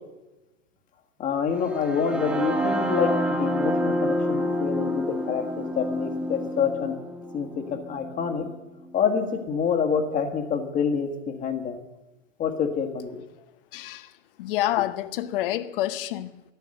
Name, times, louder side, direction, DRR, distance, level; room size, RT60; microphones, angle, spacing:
voice 1, 1.2-7.0 7.3-8.5 8.9-11.8 12.4-13.2, left 6 dB, 20° left, 1.6 m, -27 dB
sound 1, 1.6-9.5, equal, 5° right, 0.5 m, -29 dB
voice 2, 13.7-14.1 14.4-16.5, left 14 dB, 45° left, 0.9 m, -28 dB
14.0 x 11.0 x 7.8 m
hypercardioid pair, 145°, 38 cm